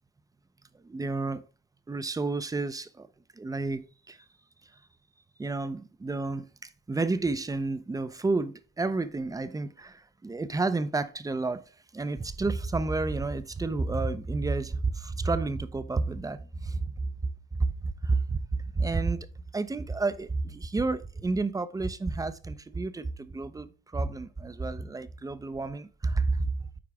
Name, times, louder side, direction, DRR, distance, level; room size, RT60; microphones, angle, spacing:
voice 1, 0.8-1.4 1.9-3.1 3.4-4.2 5.4-11.6 11.9-16.9 17.6-19.3 19.5-26.6, right 3 dB, 15° right, 0.6 m, -30 dB
8.6 x 4.7 x 3.5 m
cardioid pair, 90°, 20 cm